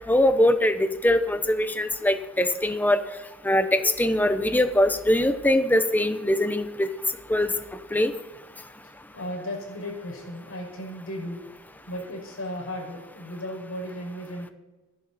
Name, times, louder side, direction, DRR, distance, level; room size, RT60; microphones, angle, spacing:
voice 1, 0.1-3.0 3.4-6.9 7.3-7.5 7.9-8.1, left 1 dB, 10° left, 10 dB, 0.9 m, -22 dB
voice 2, 8.8-11.4 11.9-14.5, equal, 85° left, -1 dB, 6.0 m, -35 dB
24.0 x 11.0 x 4.3 m, 1.2 s
head